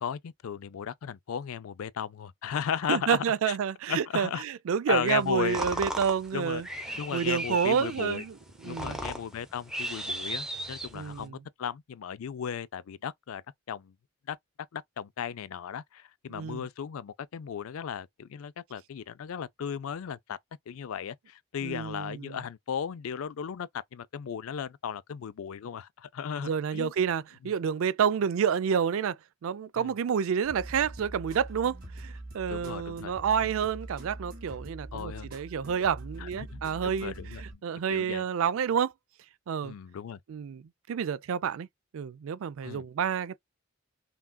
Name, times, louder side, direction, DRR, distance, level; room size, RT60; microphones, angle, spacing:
voice 1, 0.0-3.6 3.9-4.4 4.9-5.8 6.3-6.6 7.0-8.2 8.6-13.9 14.3-14.4 14.7-20.4 20.7-26.9 27.4-27.5 29.8-29.9 32.5-33.1 34.9-35.3 36.2-37.6 37.9-38.2 39.6-40.2 42.6-42.8, left 8 dB, 75° left, 0.4 m, -36 dB
voice 2, 2.9-8.4 8.6-9.0 10.9-11.4 16.3-16.6 21.6-22.4 26.4-38.9 39.5-39.7 40.3-40.6 40.9-41.7 41.9-43.4, right 7 dB, 70° right, 0.3 m, -29 dB
sound 1, 5.1-11.3, right 1 dB, 5° right, 0.6 m, -37 dB
sound 2, 30.4-37.5, right 2 dB, 40° right, 2.0 m, -43 dB
5.8 x 2.4 x 2.2 m
head